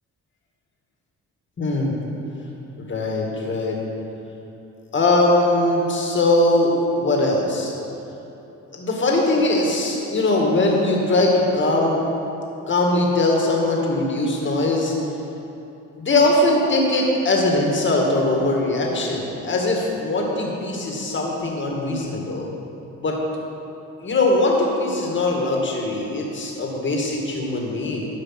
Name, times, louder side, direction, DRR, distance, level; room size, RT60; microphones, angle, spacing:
voice 1, 1.6-2.0 2.8-3.8 4.9-7.7 8.7-12.0 12.7-14.9 16.0-22.5 23.0-23.2 24.0-28.1, left 2 dB, 40° left, -1 dB, 2.1 m, -21 dB
13.0 x 5.1 x 5.9 m, 2.9 s
cardioid pair, 90°, 30 cm